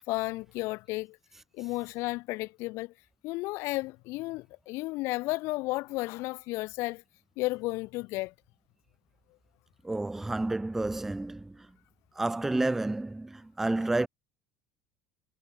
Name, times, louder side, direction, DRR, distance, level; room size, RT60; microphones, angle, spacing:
voice 1, 0.1-1.2 1.5-2.9 3.2-7.0 7.4-8.3, left 22 dB, 65° left, 0.9 m, -33 dB
voice 2, 9.8-11.7 12.2-14.1, right 2 dB, 5° right, 0.3 m, -30 dB
cardioid pair, 145°, 5 cm